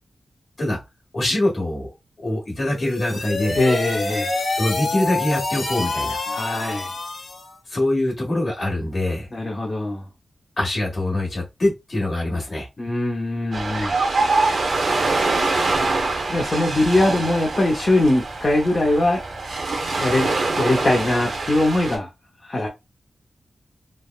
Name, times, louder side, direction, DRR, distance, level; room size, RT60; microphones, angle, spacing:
voice 1, 1.1-1.9 2.2-3.6 4.6-6.2 7.7-9.3 10.6-12.7, left 1 dB, 45° left, 1.4 m, -24 dB
sound 1, 2.7-7.5, left 3 dB, 60° left, 0.8 m, -27 dB
voice 2, 3.5-4.3 6.3-6.9 9.3-10.0 12.8-14.0 16.3-19.2 20.0-22.1 22.4-22.7, left 1 dB, 30° left, 0.7 m, -21 dB
Ocean, 13.5-22.0, right 3 dB, 65° right, 0.7 m, -24 dB
3.3 x 2.1 x 2.3 m
wide cardioid pair, 165°, 0 cm